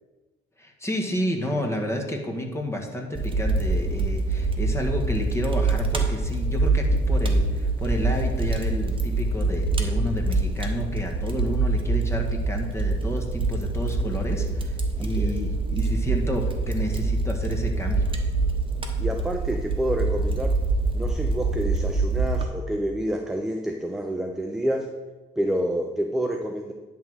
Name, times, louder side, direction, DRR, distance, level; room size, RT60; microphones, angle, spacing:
voice 1, 0.6-18.1, left 1 dB, 15° left, 1 dB, 1.5 m, -30 dB
Fire, 3.1-22.4, right 3 dB, 25° right, 1.2 m, -25 dB
voice 2, 19.0-20.6 20.9-24.9 25.4-26.7, equal, ahead, 3 dB, 0.6 m, -28 dB
10.5 x 3.7 x 6.3 m, 1.2 s
cardioid pair, 90°, 20 cm